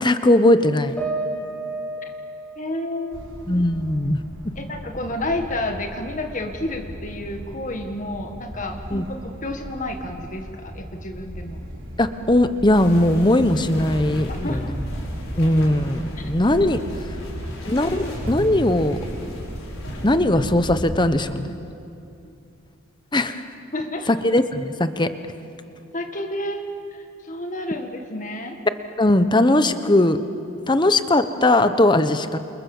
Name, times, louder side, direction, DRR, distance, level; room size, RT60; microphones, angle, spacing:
voice 1, 0.0-0.9 3.5-4.2 8.9-9.0 12.0-14.6 15.4-16.8 17.7-19.0 20.0-21.5 23.1-23.4 24.1-25.1 29.0-30.2 30.7-32.4, left 1 dB, 20° left, 10 dB, 1.1 m, -19 dB
sound 1, 1.0-4.4 4.8-5.8, right 2 dB, 5° left, 3.0 m, -34 dB
voice 2, 2.6-3.5 4.6-11.6 14.3-14.7 22.2-22.4 23.7-24.1 25.9-26.7 26.9-28.6, left 1 dB, 40° left, 5 dB, 1.8 m, -30 dB
sound 2, 3.1-21.0, equal, 65° right, 5.8 m, -35 dB
sound 3, 12.7-20.2, equal, 75° left, 6.3 m, -37 dB
29.0 x 28.5 x 7.3 m, 2.7 s
head